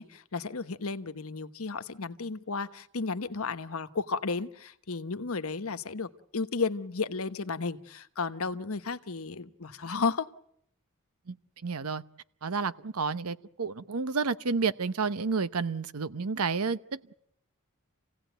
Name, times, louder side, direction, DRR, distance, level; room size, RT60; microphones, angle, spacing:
voice 1, 0.0-10.3, left 4 dB, 70° left, 1.1 m, -33 dB
voice 2, 11.6-12.0 12.4-17.1, right 4 dB, 80° right, 0.9 m, -30 dB
28.0 x 17.0 x 9.1 m
head